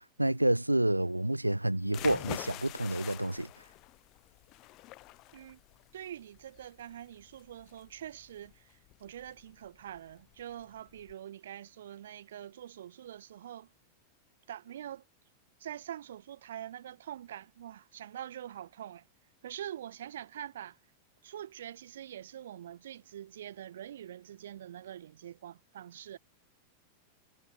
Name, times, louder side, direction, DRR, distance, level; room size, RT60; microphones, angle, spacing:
voice 1, 0.2-3.5, right 1 dB, 85° right, 0.5 m, -28 dB
sound 1, 1.8-11.1, left 20 dB, 40° left, 1.5 m, -47 dB
voice 2, 5.9-13.7 14.5-15.0 15.6-19.1 19.4-20.8 21.2-26.2, right 11 dB, 60° right, 2.6 m, -45 dB
figure-of-eight pair, 90°, 0 cm